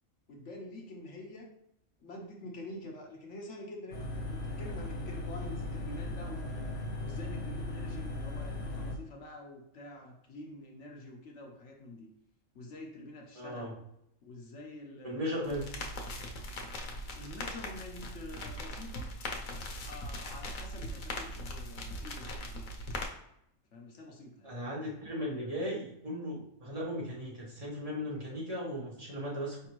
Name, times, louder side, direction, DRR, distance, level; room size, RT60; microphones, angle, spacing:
voice 1, 0.3-1.5 2.0-6.7 7.0-12.1 12.5-13.7 14.2-15.6 17.1-19.1 19.8-22.7 23.7-24.5 25.5-25.6, left 1 dB, 65° left, 0 dB, 1.1 m, -47 dB
sound 1, 3.9-9.0, left 2 dB, 50° left, 0.8 m, -37 dB
voice 2, 13.3-13.7 15.0-15.7 24.4-29.7, equal, 30° right, -6 dB, 1.4 m, -37 dB
sound 2, 15.4-23.1, left 1 dB, 90° left, 1.1 m, -40 dB
4.8 x 3.5 x 3.0 m, 0.76 s
omnidirectional pair, 1.4 m